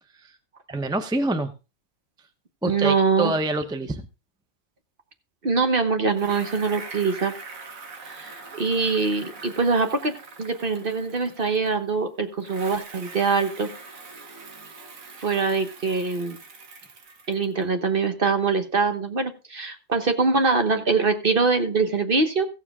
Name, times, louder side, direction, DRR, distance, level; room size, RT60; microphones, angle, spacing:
voice 1, 0.7-1.5 2.6-4.0, right 2 dB, 5° right, 9 dB, 0.5 m, -26 dB
voice 2, 2.6-3.3 5.4-7.3 8.1-13.7 15.2-16.4 17.3-22.5, right 4 dB, 40° right, 7 dB, 1.3 m, -23 dB
Bicycle, 6.1-12.0 12.4-17.6, right 4 dB, 70° right, 1.7 m, -43 dB
15.5 x 7.2 x 3.6 m, 0.29 s
omnidirectional pair, 1.5 m